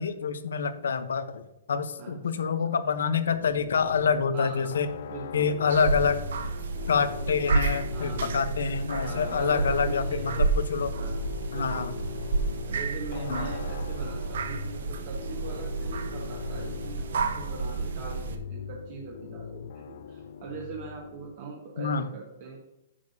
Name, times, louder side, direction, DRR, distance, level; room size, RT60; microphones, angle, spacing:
voice 1, 0.0-1.4 1.7-4.9 5.3-6.2 6.9-11.0 11.5-11.9 13.3-13.5 21.8-22.1, left 6 dB, 90° left, 11 dB, 0.9 m, -27 dB
voice 2, 2.0-2.5 4.3-4.7 5.1-5.5 7.9-8.5 9.0-10.6 11.0-11.2 11.5-12.2 12.7-22.6, right 4 dB, 35° right, -1 dB, 1.3 m, -41 dB
sound 1, 3.3-21.3, left 8 dB, 45° left, 0.4 m, -40 dB
sound 2, 5.7-18.4, right 4 dB, 60° right, 0.8 m, -31 dB
10.0 x 6.9 x 2.7 m, 0.91 s
hypercardioid pair, 180°, 0 cm